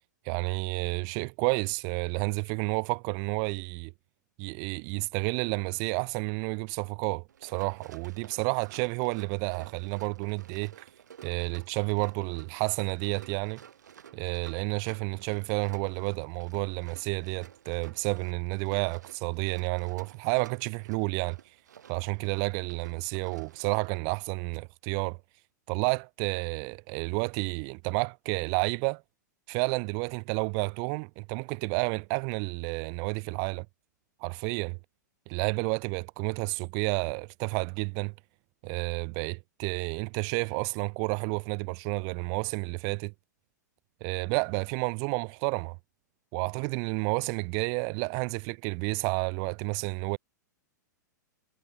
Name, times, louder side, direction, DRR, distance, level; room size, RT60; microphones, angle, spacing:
voice 1, 0.3-3.9 4.4-10.9 11.2-13.6 14.1-21.4 21.9-25.2 25.7-29.0 29.5-33.7 34.2-34.8 35.3-38.1 38.6-43.1 44.0-45.8 46.3-50.2, right 40 dB or more, 35° right, 0.3 m, -30 dB
Run, 7.3-24.0, right 9 dB, 70° right, 0.9 m, -52 dB
figure-of-eight pair, 100°, 10 cm